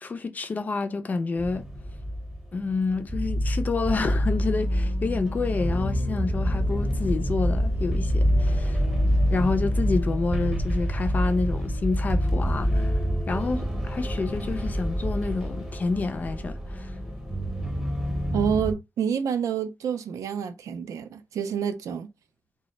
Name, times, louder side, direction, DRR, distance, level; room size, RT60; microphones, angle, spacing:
voice 1, 0.0-1.6 2.5-8.8 9.3-12.9 13.3-16.9, left 4 dB, 30° left, 0.4 m, -28 dB
sound 1, 1.4-18.7, equal, 5° right, 0.6 m, -26 dB
voice 2, 18.3-22.1, right 7 dB, 80° right, 0.4 m, -28 dB
2.1 x 2.0 x 3.8 m
wide cardioid pair, 160°, 5 cm